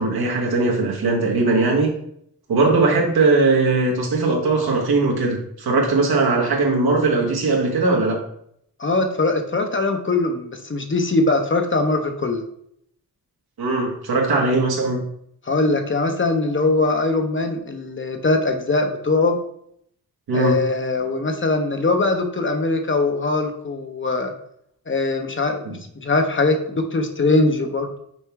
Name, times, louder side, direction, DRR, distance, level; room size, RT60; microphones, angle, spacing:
voice 1, 0.0-1.9 2.5-8.2 13.6-15.0 20.3-20.5 25.6-25.8, right 3 dB, 85° right, 0 dB, 1.6 m, -19 dB
voice 2, 8.8-12.4 15.5-19.4 20.3-24.3 24.9-25.6 26.0-28.0, left 3 dB, 35° left, 5 dB, 0.9 m, -21 dB
6.3 x 4.5 x 3.5 m, 0.71 s
cardioid pair, 85°, 36 cm